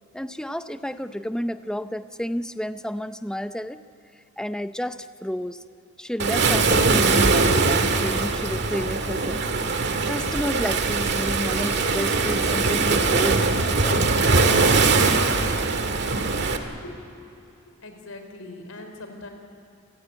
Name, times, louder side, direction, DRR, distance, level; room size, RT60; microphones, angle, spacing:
voice 1, 0.1-3.8 4.4-5.6 6.0-9.4 9.8-14.3, equal, 5° left, 10 dB, 0.6 m, -31 dB
Waves surf, 6.2-16.6, right 3 dB, 55° right, 1.8 m, -21 dB
voice 2, 17.3-19.3, left 2 dB, 75° left, 5 dB, 4.2 m, -42 dB
29.5 x 17.5 x 8.8 m, 2.8 s
head